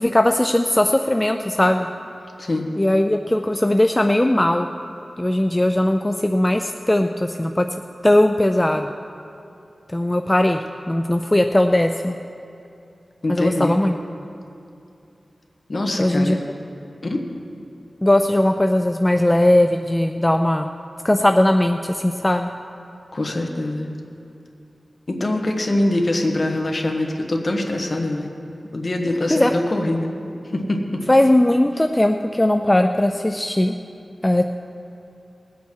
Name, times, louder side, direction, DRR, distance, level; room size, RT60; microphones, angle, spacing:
voice 1, 0.0-1.9 2.8-4.7 5.2-7.7 8.0-8.9 9.9-12.2 13.3-13.9 16.0-16.4 18.0-20.7 21.0-22.5 29.3-29.5 31.1-33.7 34.2-34.5, left 1 dB, 15° left, 6 dB, 0.4 m, -18 dB
voice 2, 13.2-13.7 15.7-16.4 17.0-17.2 23.1-23.9 25.1-28.3 28.7-30.1 30.5-31.0, left 1 dB, 50° left, 2 dB, 1.5 m, -23 dB
20.5 x 8.3 x 4.7 m, 2.7 s
wide cardioid pair, 85°, 0 cm